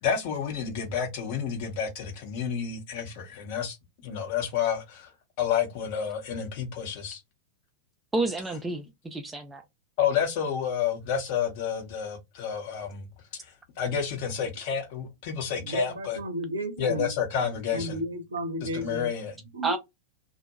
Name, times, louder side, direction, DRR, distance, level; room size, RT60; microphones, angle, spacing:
voice 1, 0.0-3.8 4.0-5.1 5.4-7.2 10.0-13.1 13.4-16.2 16.8-18.0 18.6-19.4, left 8 dB, 50° left, 0.9 m, -30 dB
voice 2, 8.1-9.6 19.6-19.8, right 3 dB, 10° right, 0.4 m, -29 dB
voice 3, 15.6-17.1 17.7-19.1 19.5-19.8, equal, 70° right, 0.6 m, -32 dB
2.1 x 2.1 x 2.8 m
figure-of-eight pair, 90°, 0 cm